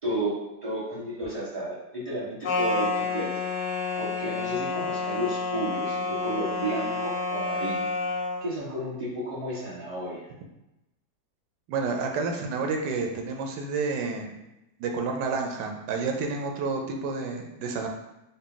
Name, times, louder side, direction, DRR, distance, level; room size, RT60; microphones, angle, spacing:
voice 1, 0.0-3.3 4.0-7.9 8.4-10.2, right 1 dB, 20° right, -8 dB, 1.1 m, -32 dB
sound 1, 2.4-8.4, left 3 dB, 60° left, 0.9 m, -29 dB
voice 2, 11.7-14.4 14.8-17.9, right 4 dB, 90° right, 3 dB, 1.2 m, -30 dB
4.1 x 2.2 x 3.7 m, 0.93 s
omnidirectional pair, 1.8 m